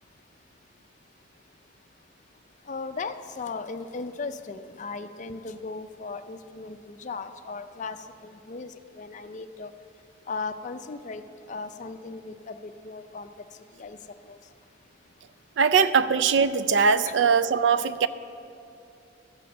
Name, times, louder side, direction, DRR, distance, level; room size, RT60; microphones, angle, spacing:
voice 1, 2.7-8.0 8.2-8.7 9.0-9.7 10.3-11.2 11.5-13.3 13.8-14.0 17.1-17.2, left 4 dB, 40° left, 0.4 m, -36 dB
voice 2, 15.6-18.1, right 5 dB, 65° right, 0.4 m, -21 dB
13.5 x 6.0 x 7.2 m
head